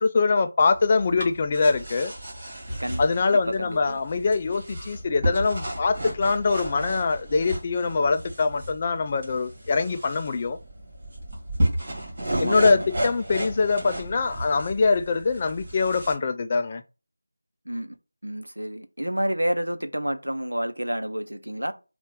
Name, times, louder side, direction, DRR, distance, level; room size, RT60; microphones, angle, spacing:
voice 1, 0.0-2.1 3.0-10.6 12.4-16.8, left 4 dB, 25° left, 0.3 m, -23 dB
sound 1, 0.6-16.1, right 1 dB, 35° right, 2.0 m, -33 dB
voice 2, 3.3-4.0 12.2-12.9 17.7-18.0 18.2-21.7, equal, 85° right, 0.7 m, -29 dB
3.9 x 2.4 x 3.7 m
figure-of-eight pair, 165°, 0 cm